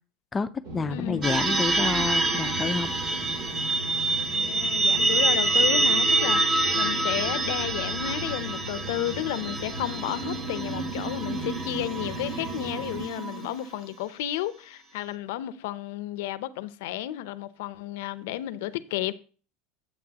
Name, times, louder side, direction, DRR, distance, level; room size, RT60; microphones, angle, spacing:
voice 1, 0.3-2.9, left 4 dB, 20° left, 0.5 m, -29 dB
sound 1, 0.6-13.1, right 2 dB, 70° right, 3.2 m, -38 dB
voice 2, 0.9-1.2 4.3-19.1, left 14 dB, 80° left, 0.6 m, -32 dB
sound 2, 1.2-13.8, right 2 dB, 30° right, 1.6 m, -26 dB
9.6 x 8.0 x 2.9 m
supercardioid pair, 120°, 0 cm